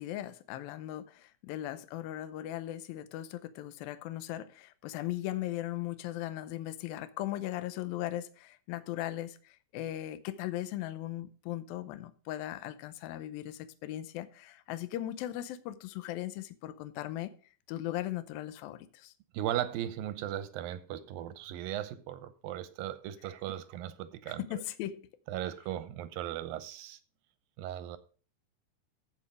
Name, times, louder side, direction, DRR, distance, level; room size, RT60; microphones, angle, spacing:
voice 1, 0.0-17.3 17.7-19.1 24.3-25.0, left 14 dB, 80° left, 2.4 m, -38 dB
voice 2, 19.3-24.6 25.3-27.0 27.6-28.0, right 12 dB, 80° right, 2.3 m, -37 dB
15.0 x 5.2 x 5.0 m
omnidirectional pair, 4.4 m